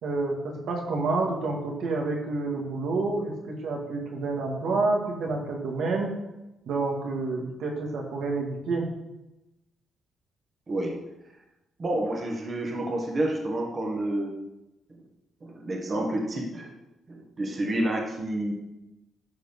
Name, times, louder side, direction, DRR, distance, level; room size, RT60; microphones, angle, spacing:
voice 1, 0.0-6.1 6.7-8.8, right 3 dB, 80° right, -1 dB, 1.9 m, -28 dB
voice 2, 10.7-11.0 11.8-14.3 15.4-16.7 17.1-18.5, right 1 dB, 40° right, 0 dB, 1.7 m, -29 dB
11.5 x 4.0 x 5.4 m, 0.95 s
cardioid pair, 95°, 0 cm